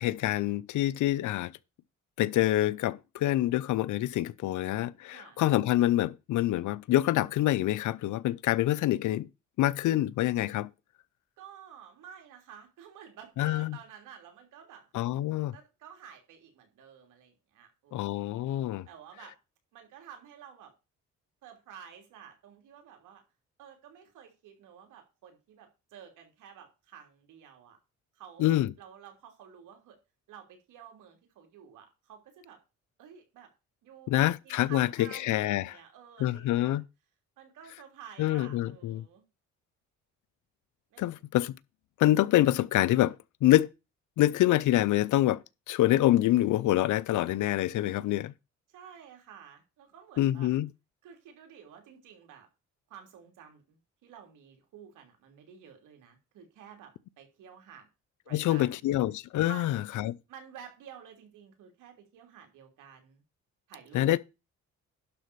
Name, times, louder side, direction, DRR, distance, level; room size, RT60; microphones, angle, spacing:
voice 1, 0.0-1.5 2.2-9.3 9.6-10.7 13.4-13.8 14.9-15.5 17.9-18.9 28.4-28.7 34.1-35.7 36.2-36.8 38.2-39.0 41.0-41.6 42.0-43.1 43.4-43.7 44.2-45.4 45.7-48.3 50.2-50.7 58.3-60.2 63.9-64.2, left 14 dB, 75° left, 0.7 m, -26 dB
voice 2, 5.1-5.4 11.4-14.9 15.5-18.6 18.9-19.4 19.7-20.7 21.4-23.2 23.6-27.8 28.1-30.0 30.3-32.6 33.0-33.5 33.8-36.8 37.4-39.2 40.9-41.2 48.7-50.5 51.0-52.5 52.9-57.9 58.2-58.8 59.5-59.7 60.3-63.2 63.7-64.2, right 8 dB, 85° right, 3.2 m, -51 dB
11.5 x 4.1 x 6.8 m
cardioid pair, 90°, 30 cm